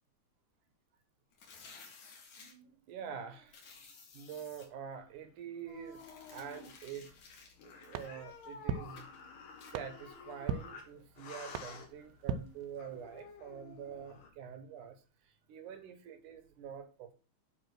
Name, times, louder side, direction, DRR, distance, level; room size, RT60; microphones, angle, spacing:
sound 1, 1.3-2.5 3.5-4.7 5.9-8.5 9.0-9.2 9.6-9.8, left 4 dB, 55° left, 3.3 m, -56 dB
voice 1, 2.3-3.9 4.1-7.2 7.8-9.1 9.7-17.1, right 8 dB, 70° right, 2.1 m, -46 dB
sound 2, 5.7-14.3, left 5 dB, 80° left, 3.7 m, -52 dB
sound 3, 7.9-13.2, right 7 dB, 90° right, 2.0 m, -42 dB
9.9 x 4.1 x 6.1 m
omnidirectional pair, 4.5 m